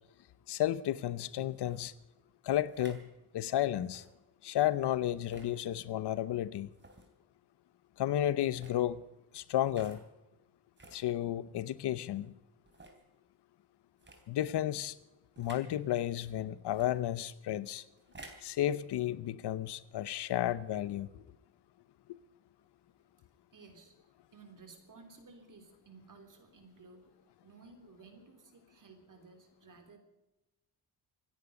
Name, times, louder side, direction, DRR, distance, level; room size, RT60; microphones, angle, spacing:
voice 1, 0.5-1.9 2.4-3.1 3.3-4.0 4.4-6.7 8.0-9.0 9.3-10.0 10.9-12.3 14.3-14.9 15.4-17.8 18.4-21.2, left 12 dB, 80° left, 0.8 m, -32 dB
sound 1, 1.5-1.8 2.6-3.0 3.8-4.1 5.2-5.5 6.7-7.1 8.4-8.8 9.7-10.0 10.8-11.0 11.7-11.8 12.6-13.0 14.0-14.2 15.4-15.7 16.7-16.9 18.0-18.5, right 2 dB, 30° right, 3.2 m, -53 dB
voice 2, 23.5-23.9 24.3-27.1 27.4-30.0, right 4 dB, 50° right, 3.5 m, -56 dB
26.0 x 10.0 x 5.2 m
cardioid pair, 90°, 40 cm